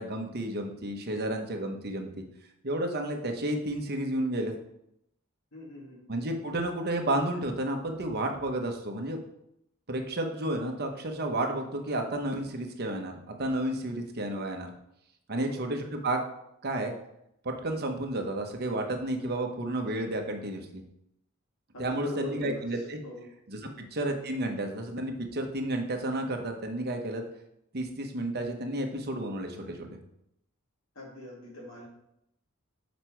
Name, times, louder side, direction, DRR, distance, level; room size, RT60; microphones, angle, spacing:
voice 1, 0.0-2.2 2.6-4.5 6.1-9.2 9.9-14.7 15.3-16.2 16.6-16.9 17.4-20.8 21.8-23.0 23.5-23.6 23.9-27.2 27.7-30.0, right 1 dB, 50° right, 3 dB, 1.0 m, -31 dB
voice 2, 5.5-6.0 15.3-15.6 21.7-23.2 23.6-23.9 31.0-31.8, left 2 dB, 70° left, -4 dB, 2.0 m, -41 dB
6.6 x 5.2 x 4.5 m, 0.79 s
head